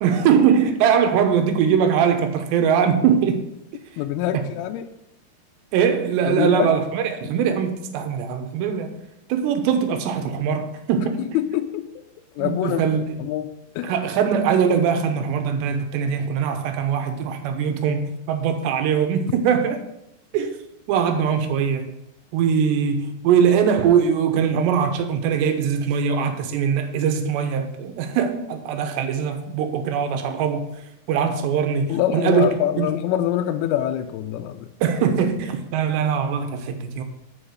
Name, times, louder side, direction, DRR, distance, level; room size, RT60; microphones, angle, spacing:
voice 1, 0.0-3.5 4.3-4.4 5.7-8.9 9.3-11.3 12.4-13.2 13.8-19.8 20.3-20.5 20.9-22.0 22.3-30.7 31.1-32.5 32.8-32.9 34.8-37.0, right 7 dB, 85° right, 3.2 m, -21 dB
voice 2, 4.0-4.9 6.2-6.8 11.0-11.1 11.3-11.9 12.4-12.8 13.2-14.0 31.9-34.7, left 12 dB, 80° left, 2.3 m, -25 dB
9.8 x 5.4 x 6.6 m
omnidirectional pair, 4.9 m